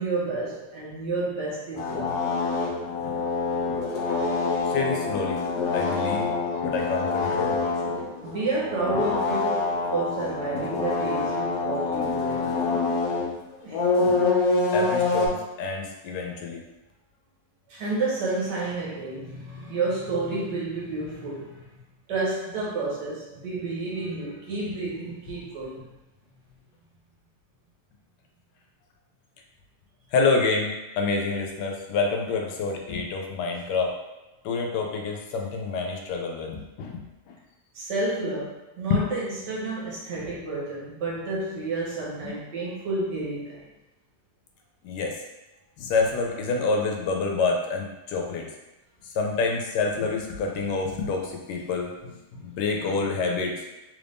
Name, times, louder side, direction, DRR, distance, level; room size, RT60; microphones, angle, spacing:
voice 1, 0.0-2.4 5.9-6.3 8.2-13.2 13.6-13.8 17.7-21.6 22.1-25.9 37.7-43.7, right 3 dB, 75° right, -5 dB, 1.6 m, -30 dB
sound 1, 1.8-13.3 13.7-15.3, left 3 dB, 65° left, 1.1 m, -26 dB
voice 2, 4.7-5.4 5.7-6.3 6.6-8.0 14.7-16.6 30.1-33.9 34.4-37.3 38.9-39.0 40.1-40.3 42.2-42.4 44.8-45.2 45.8-48.5 49.0-53.6, left 4 dB, 85° left, 1 dB, 1.2 m, -27 dB
3.4 x 2.6 x 3.4 m, 1.0 s
omnidirectional pair, 1.9 m